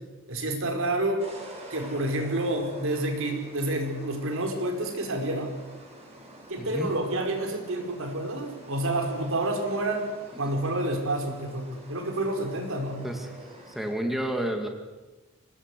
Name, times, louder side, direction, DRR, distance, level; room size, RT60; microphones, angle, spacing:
voice 1, 0.3-1.2 1.7-5.5 6.5-13.0, right 1 dB, 65° right, 3 dB, 4.9 m, -29 dB
sound 1, 1.2-13.9, right 1 dB, 30° right, 7.4 m, -47 dB
voice 2, 6.6-6.9 13.0-13.3 13.7-14.7, right 1 dB, ahead, 3 dB, 2.2 m, -30 dB
26.0 x 18.5 x 8.3 m, 1.2 s
head